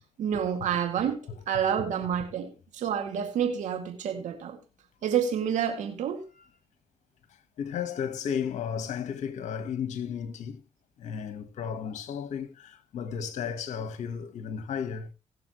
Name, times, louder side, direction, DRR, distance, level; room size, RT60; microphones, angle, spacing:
voice 1, 0.2-4.6 5.0-6.2, right 8 dB, 75° right, 2.2 m, -29 dB
voice 2, 7.6-10.6 11.0-15.1, left 7 dB, 70° left, 1.3 m, -34 dB
20.0 x 6.9 x 3.1 m
supercardioid pair, 65°, 13 cm